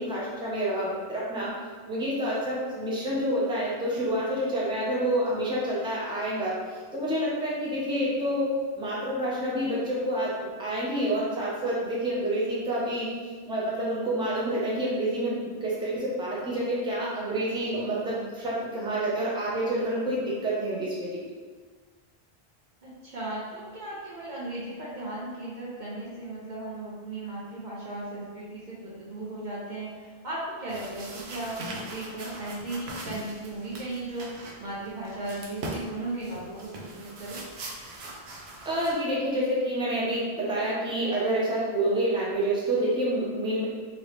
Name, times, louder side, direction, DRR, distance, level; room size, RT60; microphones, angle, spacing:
voice 1, 0.0-1.5 1.9-13.1 13.5-21.1 38.6-43.6, right 1 dB, 5° right, -7 dB, 0.6 m, -28 dB
voice 2, 22.8-37.4, right 2 dB, 55° right, -6 dB, 0.7 m, -36 dB
sound 1, 30.7-38.9, right 2 dB, 80° right, 0.9 m, -41 dB
3.0 x 2.8 x 3.2 m, 1.5 s
omnidirectional pair, 1.1 m